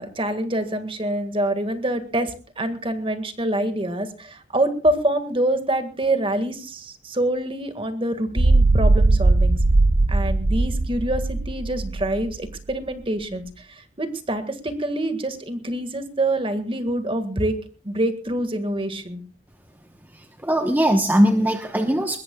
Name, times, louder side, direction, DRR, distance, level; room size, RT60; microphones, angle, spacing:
voice 1, 0.0-9.6 10.1-17.6 17.8-19.2, right 1 dB, 30° right, 9 dB, 1.8 m, -26 dB
sound 1, 8.4-12.6, right 2 dB, 55° right, 0.8 m, -19 dB
voice 2, 20.1-22.2, equal, 10° right, 5 dB, 1.0 m, -20 dB
22.0 x 20.0 x 2.3 m, 0.36 s
head